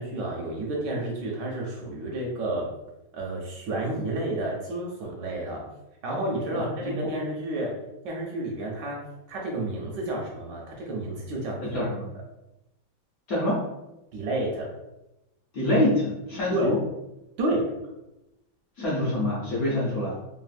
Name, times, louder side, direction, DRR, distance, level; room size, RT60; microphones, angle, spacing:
voice 1, 0.0-2.7 3.1-5.6 6.0-7.7 8.0-9.0 9.3-11.8 14.1-14.7 16.5-16.7 17.4-17.6, right 1 dB, 75° right, -1 dB, 1.1 m, -30 dB
voice 2, 6.5-7.1 11.6-12.1 13.3-13.6 15.5-16.8 18.8-20.2, left 1 dB, 60° left, -7 dB, 1.0 m, -26 dB
3.3 x 2.4 x 2.4 m, 0.94 s
omnidirectional pair, 2.2 m